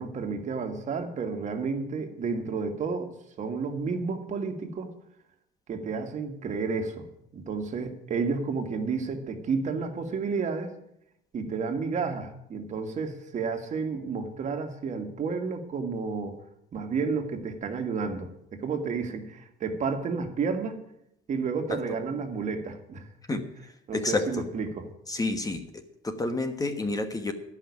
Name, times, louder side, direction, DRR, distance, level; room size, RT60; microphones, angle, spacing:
voice 1, 0.0-3.1 3.4-4.9 5.7-7.1 7.3-10.7 11.3-16.4 16.7-20.8 21.3-23.4 23.9-24.9, right 5 dB, 45° right, 5 dB, 1.8 m, -31 dB
voice 2, 23.9-24.2 25.1-27.3, left 2 dB, 20° left, 8 dB, 1.2 m, -29 dB
13.5 x 5.8 x 9.6 m, 0.79 s
cardioid pair, 110°, 17 cm